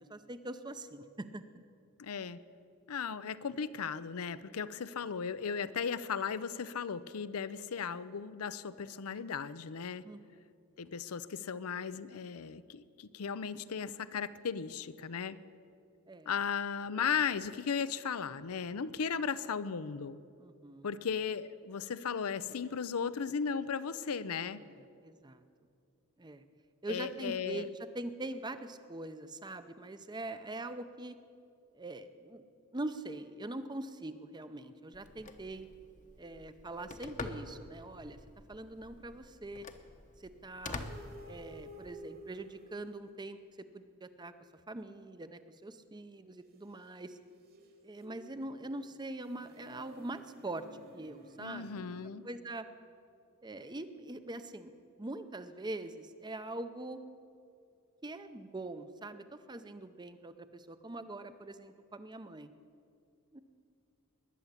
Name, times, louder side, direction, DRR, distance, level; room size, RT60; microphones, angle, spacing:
voice 1, 0.0-1.4 10.0-10.5 16.1-16.3 20.4-20.9 24.6-25.4 26.2-26.4 26.8-31.2 31.7-32.4 32.7-35.7 36.2-38.2 38.5-39.7 40.2-40.9 41.2-43.4 43.7-44.3 44.7-47.2 47.8-51.7 52.2-52.7 53.4-54.7 55.0-57.0 58.0-62.5 63.3-63.4, right 2 dB, 20° right, 11 dB, 0.7 m, -43 dB
voice 2, 2.0-2.4 2.9-10.1 10.8-15.4 16.3-20.2 20.8-24.6 26.9-27.7 51.4-52.3, left 6 dB, 80° left, 15 dB, 0.6 m, -36 dB
Telephone, 34.9-41.9, left 3 dB, 35° left, 0.9 m, -47 dB
sound 1, 40.8-43.4 46.9-52.1, right 1 dB, 45° right, 1.7 m, -53 dB
20.5 x 7.1 x 9.6 m, 2.4 s
head